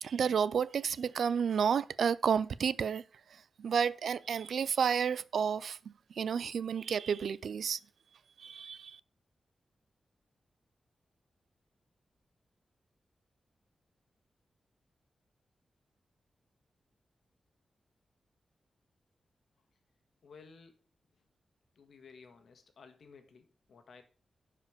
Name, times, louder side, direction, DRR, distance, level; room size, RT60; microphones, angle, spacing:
voice 1, 0.0-3.0 3.6-5.8 6.2-7.8 8.4-9.0, right 7 dB, 80° right, 0.4 m, -31 dB
voice 2, 20.2-20.8 21.7-24.0, left 5 dB, 70° left, 1.6 m, -56 dB
10.5 x 5.1 x 5.0 m
wide cardioid pair, 155°, 0 cm